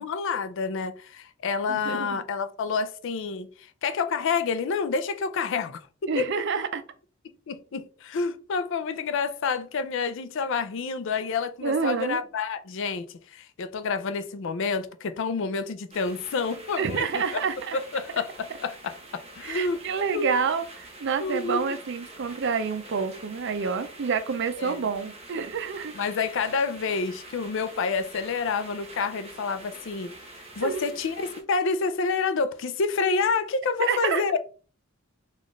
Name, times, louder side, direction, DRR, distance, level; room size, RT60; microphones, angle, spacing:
voice 1, 0.0-6.3 7.5-17.2 17.7-19.8 20.1-20.3 21.2-21.8 24.6-24.8 25.9-34.4, left 4 dB, 65° left, 0.4 m, -28 dB
voice 2, 1.7-2.2 6.1-6.8 11.6-12.2 16.8-17.8 19.4-25.9 30.6-30.9 33.8-34.2, right 5 dB, 60° right, 0.5 m, -28 dB
sound 1, 15.9-31.4, right 2 dB, 30° right, 0.8 m, -46 dB
4.0 x 2.4 x 3.1 m
head